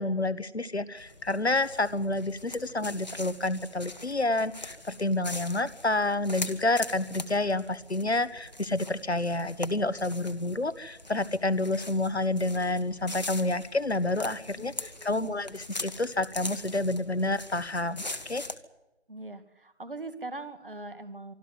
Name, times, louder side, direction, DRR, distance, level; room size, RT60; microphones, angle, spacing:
voice 1, 0.0-18.4, left 2 dB, 70° left, 15 dB, 1.6 m, -29 dB
sound 1, 1.0-18.6, left 2 dB, 40° left, 1.6 m, -42 dB
voice 2, 14.6-15.4 19.1-21.3, right 2 dB, 50° right, 12 dB, 2.3 m, -41 dB
25.5 x 12.5 x 9.5 m, 1.0 s
figure-of-eight pair, 165°, 34 cm